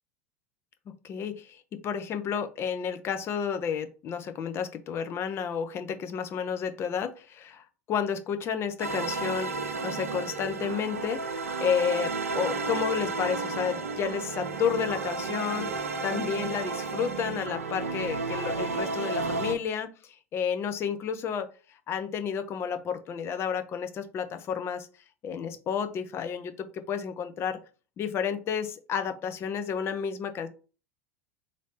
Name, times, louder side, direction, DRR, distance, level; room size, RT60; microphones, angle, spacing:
voice 1, 1.0-9.5 9.8-15.7 16.0-21.5 21.9-24.9 25.2-27.6 28.0-30.5, left 7 dB, 35° left, 8 dB, 0.5 m, -31 dB
sound 1, 8.8-19.5, right 4 dB, 75° right, 0.5 m, -32 dB
3.2 x 2.7 x 3.9 m, 0.36 s
figure-of-eight pair, 80°, 8 cm